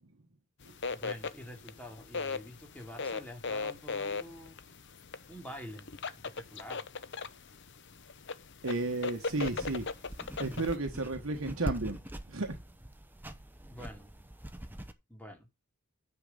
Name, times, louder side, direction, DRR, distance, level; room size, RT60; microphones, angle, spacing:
sound 1, 0.6-10.7, left 4 dB, 50° left, 0.8 m, -39 dB
voice 1, 0.9-4.6 5.3-5.9 6.4-6.8 13.7-14.1 15.1-15.5, equal, 5° left, 2.7 m, -46 dB
voice 2, 8.6-9.9 10.4-12.6, right 2 dB, 60° right, 1.2 m, -33 dB
sound 2, 9.2-14.9, right 1 dB, 10° right, 0.8 m, -43 dB
9.8 x 6.4 x 5.3 m
head